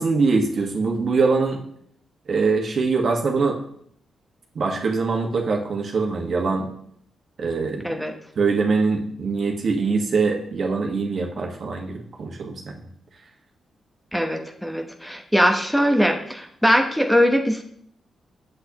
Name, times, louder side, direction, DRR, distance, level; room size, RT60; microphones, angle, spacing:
voice 1, 0.0-1.6 2.3-3.6 4.5-6.7 7.4-7.8 8.3-12.6, right 4 dB, 60° right, 1 dB, 1.4 m, -23 dB
voice 2, 14.1-17.6, equal, 5° left, 3 dB, 0.9 m, -21 dB
8.2 x 7.7 x 3.0 m, 0.66 s
cardioid pair, 80°, 0 cm